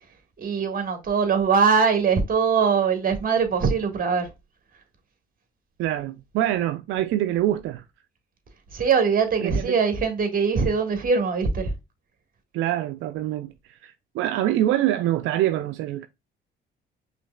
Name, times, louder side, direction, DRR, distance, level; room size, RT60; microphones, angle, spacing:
voice 1, 0.4-4.3 8.7-11.7, right 5 dB, 45° right, 1.6 m, -22 dB
voice 2, 5.8-7.8 9.4-9.8 12.5-16.1, right 13 dB, 85° right, 0.4 m, -25 dB
5.1 x 3.2 x 2.2 m
cardioid pair, 90°, 20 cm